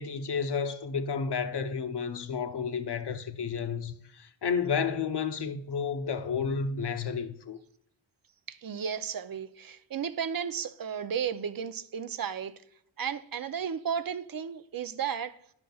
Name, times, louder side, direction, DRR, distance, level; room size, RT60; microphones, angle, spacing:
voice 1, 0.0-7.6, left 6 dB, 55° left, 0.7 m, -31 dB
voice 2, 8.5-12.5 13.0-15.4, right 7 dB, 50° right, 0.5 m, -34 dB
10.5 x 6.1 x 2.3 m
wide cardioid pair, 85°, 47 cm